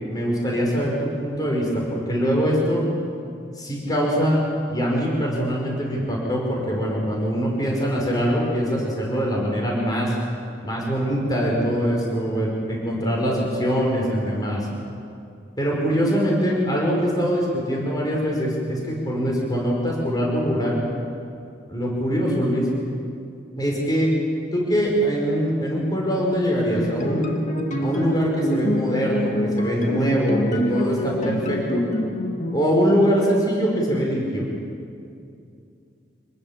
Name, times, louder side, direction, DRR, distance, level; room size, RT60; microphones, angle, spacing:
voice 1, 0.1-2.8 3.6-4.4 4.7-10.2 10.6-14.7 15.6-20.8 21.7-22.7 23.6-24.1 24.5-27.4 27.8-31.8 32.5-34.4, equal, 20° left, -2 dB, 5.4 m, -23 dB
sound 1, 26.7-32.6, equal, 45° left, 2.0 m, -26 dB
26.5 x 19.5 x 7.5 m, 2.5 s
head